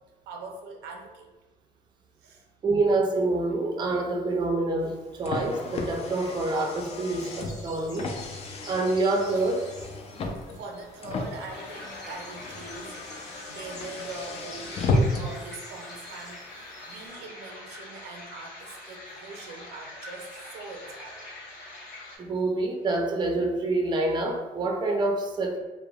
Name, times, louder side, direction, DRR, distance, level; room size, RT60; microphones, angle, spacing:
voice 1, 0.3-1.3 2.2-2.4 10.6-21.3 22.3-22.5, right 3 dB, 85° right, 2 dB, 0.5 m, -42 dB
voice 2, 2.6-8.1 8.7-9.7 22.2-25.6, right 2 dB, 25° right, 1 dB, 0.4 m, -26 dB
Car, 4.8-15.4, left 2 dB, 40° left, 0.4 m, -33 dB
sound 1, 5.5-17.1, left 1 dB, 20° left, 0.8 m, -49 dB
sound 2, 11.5-22.2, left 2 dB, 85° left, 1.1 m, -44 dB
3.2 x 2.1 x 2.2 m, 1.2 s
cardioid pair, 110°, 17 cm